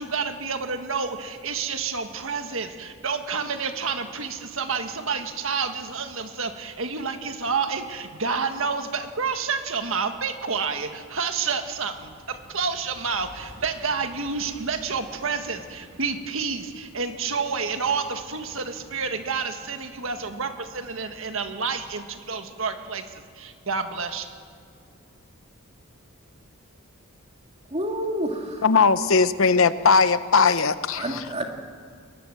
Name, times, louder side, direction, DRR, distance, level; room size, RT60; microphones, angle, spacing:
voice 1, 0.0-24.3, right 5 dB, 65° right, 1.7 m, -29 dB
sound 1, 11.7-22.0, equal, 85° right, 4.0 m, -51 dB
voice 2, 27.7-28.6 31.0-31.4, right 1 dB, 30° right, 2.3 m, -28 dB
voice 3, 28.6-31.2, left 4 dB, 65° left, 0.8 m, -19 dB
21.5 x 20.0 x 7.9 m
head